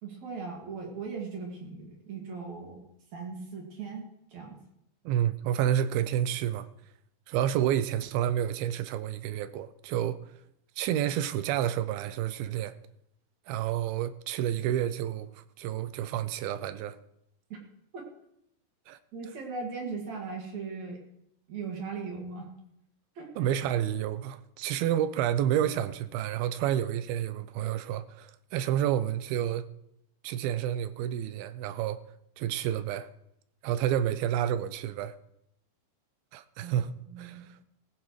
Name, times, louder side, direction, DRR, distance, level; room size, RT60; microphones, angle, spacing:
voice 1, 0.0-2.8 3.1-4.0 4.3-4.6 17.5-17.6 17.9-18.1 19.1-21.0 21.5-22.5 23.2-23.3 36.6-36.8 37.1-37.4, right 4 dB, 55° right, 3.2 m, -38 dB
voice 2, 5.1-6.7 7.3-10.2 10.8-12.7 13.5-17.0 18.9-19.0 23.4-29.6 30.2-32.0 32.4-33.1 33.6-35.2 36.3-37.6, right 11 dB, 90° right, 2.6 m, -29 dB
19.0 x 15.5 x 3.2 m
omnidirectional pair, 4.2 m